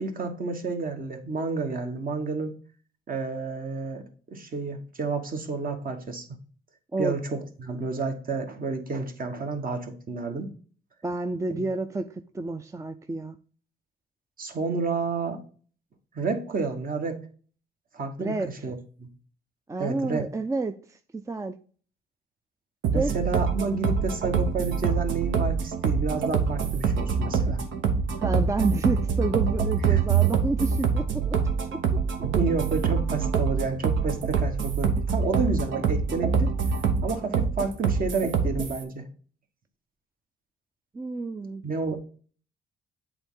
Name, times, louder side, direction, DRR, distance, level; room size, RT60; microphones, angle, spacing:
voice 1, 0.0-2.5 3.1-6.2 7.0-10.5 11.6-11.7 14.4-15.4 16.1-17.2 17.9-19.1 19.8-20.2 22.9-27.6 29.9-30.0 32.2-36.5 37.0-39.0 41.6-42.0, right 4 dB, 45° right, 5 dB, 1.3 m, -30 dB
voice 2, 11.0-12.1 12.3-13.4 18.2-18.5 19.7-21.5 22.9-23.1 28.2-31.4 31.7-31.8 40.9-41.6, right 3 dB, 15° right, 8 dB, 0.4 m, -29 dB
sound 1, 22.8-38.8, right 6 dB, 75° right, 1.2 m, -25 dB
8.0 x 3.6 x 3.7 m, 0.42 s
cardioid pair, 90°, 20 cm